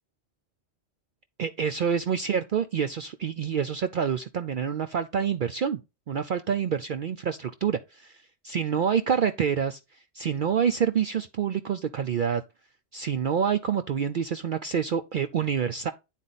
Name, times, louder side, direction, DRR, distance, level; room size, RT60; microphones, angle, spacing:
voice 1, 1.4-5.8 6.1-9.8 10.1-12.4 12.9-15.9, right 7 dB, 55° right, 0.6 m, -27 dB
9.1 x 4.3 x 4.0 m
omnidirectional pair, 1.2 m